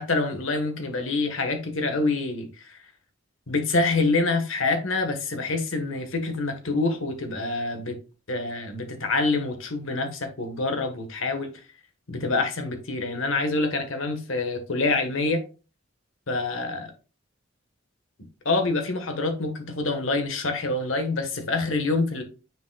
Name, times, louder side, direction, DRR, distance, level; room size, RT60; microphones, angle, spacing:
voice 1, 0.0-2.8 3.5-8.0 8.3-11.5 12.1-15.4 16.3-16.9 18.4-22.2, left 3 dB, 70° left, 1.5 m, -26 dB
9.4 x 5.2 x 2.4 m
head